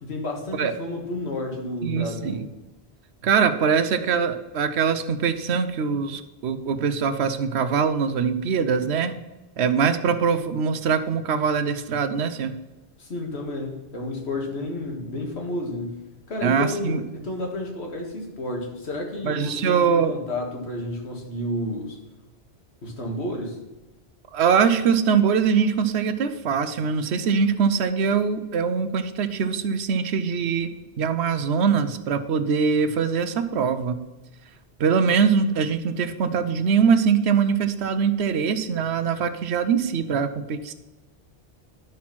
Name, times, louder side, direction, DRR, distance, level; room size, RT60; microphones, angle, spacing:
voice 1, 0.0-2.4 13.0-22.0 22.8-23.6, left 1 dB, 75° left, 1 dB, 1.9 m, -31 dB
voice 2, 1.8-2.5 3.2-9.2 9.6-12.5 16.4-17.0 19.2-20.2 24.3-30.7 31.0-34.0 34.8-40.7, right 6 dB, 80° right, 11 dB, 0.9 m, -22 dB
11.5 x 4.3 x 5.9 m, 1.0 s
omnidirectional pair, 1.1 m